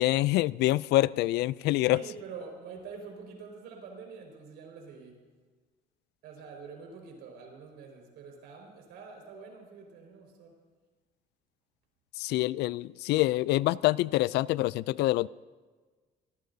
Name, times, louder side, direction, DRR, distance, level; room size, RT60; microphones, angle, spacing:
voice 1, 0.0-2.0 12.2-15.3, left 17 dB, 80° left, 21 dB, 0.4 m, -26 dB
voice 2, 1.8-5.2 6.2-10.6, right 5 dB, 85° right, 1 dB, 5.0 m, -46 dB
26.0 x 18.5 x 2.7 m, 1.4 s
cardioid pair, 110°, 17 cm